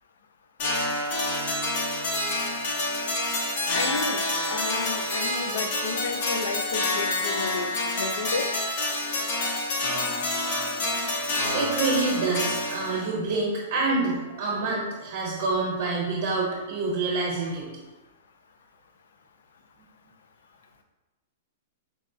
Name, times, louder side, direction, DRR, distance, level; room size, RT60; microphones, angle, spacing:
sound 1, 0.6-13.1, left 2 dB, 35° left, 0.6 m, -28 dB
voice 1, 3.7-4.2 4.5-8.5, left 5 dB, 85° left, 8 dB, 0.3 m, -32 dB
voice 2, 11.3-17.7, right 3 dB, 40° right, -4 dB, 0.8 m, -27 dB
4.5 x 2.0 x 2.6 m, 1.1 s
supercardioid pair, 180°, 0 cm